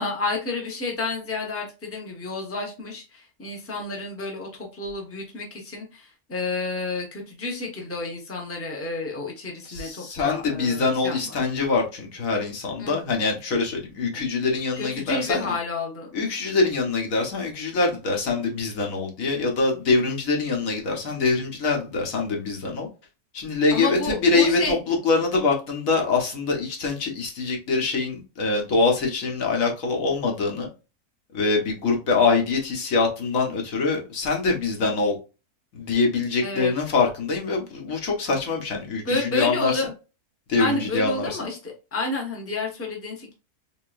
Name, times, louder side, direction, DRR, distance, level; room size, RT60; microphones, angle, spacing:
voice 1, 0.0-11.3 12.8-13.0 14.1-14.2 14.8-16.1 23.7-24.8 36.4-36.7 39.0-39.9 40.6-43.3, left 3 dB, 10° left, 0.9 m, -30 dB
voice 2, 9.6-15.5 16.1-22.9 23.3-30.7 31.3-35.1 35.7-39.8 40.5-41.4, left 4 dB, 60° left, 1.5 m, -24 dB
3.8 x 3.5 x 2.5 m
omnidirectional pair, 1.7 m